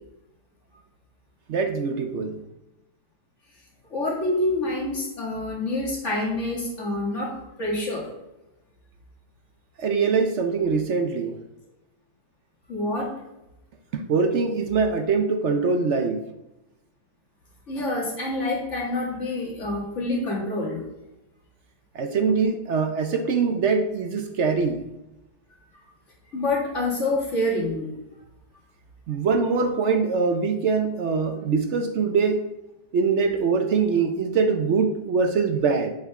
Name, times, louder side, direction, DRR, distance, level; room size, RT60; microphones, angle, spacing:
voice 1, 1.5-2.4 9.8-11.4 13.9-16.3 21.9-24.8 29.1-32.6 32.9-35.9, right 5 dB, 60° right, 0.8 m, -23 dB
voice 2, 3.9-8.1 12.7-13.1 17.7-20.8 26.3-27.9, left 2 dB, 45° left, 2.5 m, -27 dB
7.9 x 7.0 x 3.6 m
omnidirectional pair, 1.7 m